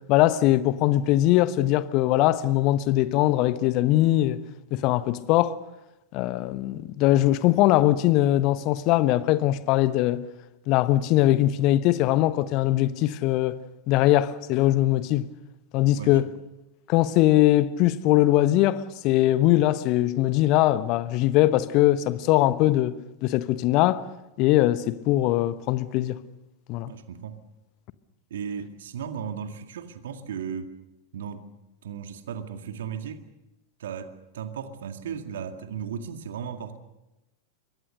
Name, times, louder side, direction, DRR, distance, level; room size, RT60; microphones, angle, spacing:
voice 1, 0.1-4.4 4.7-5.5 6.1-10.2 10.7-13.6 13.9-15.3 15.7-16.2 16.9-23.0 23.2-24.0 24.4-26.2 26.7-26.9, left 15 dB, 40° left, 1.1 m, -21 dB
voice 2, 26.9-27.4 28.3-30.7 31.1-31.5 31.8-33.2 33.8-36.8, right 7 dB, 60° right, 2.0 m, -36 dB
26.5 x 23.5 x 6.6 m
figure-of-eight pair, 90°, 0 cm